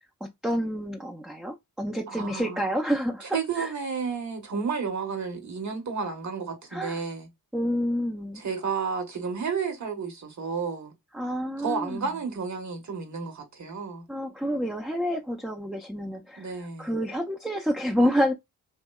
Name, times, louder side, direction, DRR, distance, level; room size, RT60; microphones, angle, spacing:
voice 1, 0.2-3.7 6.7-7.0 7.5-8.4 11.1-12.1 14.1-16.5 16.8-18.3, equal, ahead, 0.4 m, -28 dB
voice 2, 2.1-2.6 3.3-7.3 8.3-10.9 11.6-14.0 16.4-17.0, right 5 dB, 50° right, 1.0 m, -32 dB
2.7 x 2.1 x 2.2 m
supercardioid pair, 45°, 37 cm